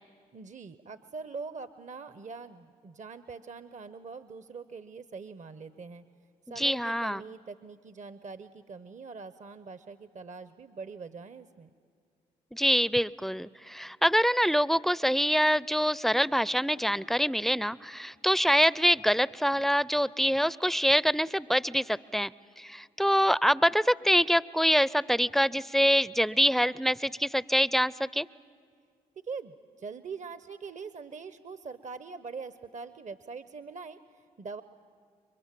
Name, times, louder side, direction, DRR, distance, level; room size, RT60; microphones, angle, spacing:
voice 1, 0.3-6.0 6.5-11.7 29.2-34.6, right 4 dB, 45° right, 13 dB, 0.9 m, -43 dB
voice 2, 6.5-7.2 12.5-22.3 22.6-28.3, equal, ahead, 20 dB, 0.6 m, -25 dB
29.5 x 23.0 x 7.6 m, 2.1 s
hypercardioid pair, 45°, 17 cm